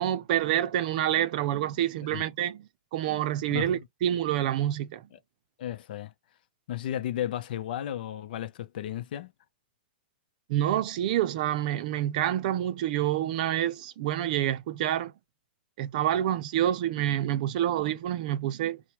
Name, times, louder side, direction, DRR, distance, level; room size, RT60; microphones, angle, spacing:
voice 1, 0.0-5.0 10.5-15.1 15.8-18.8, right 12 dB, 50° right, 0.6 m, -27 dB
voice 2, 3.5-3.8 5.6-6.1 6.7-9.3, left 11 dB, 60° left, 0.7 m, -34 dB
4.1 x 2.2 x 3.0 m
hypercardioid pair, 150°, 6 cm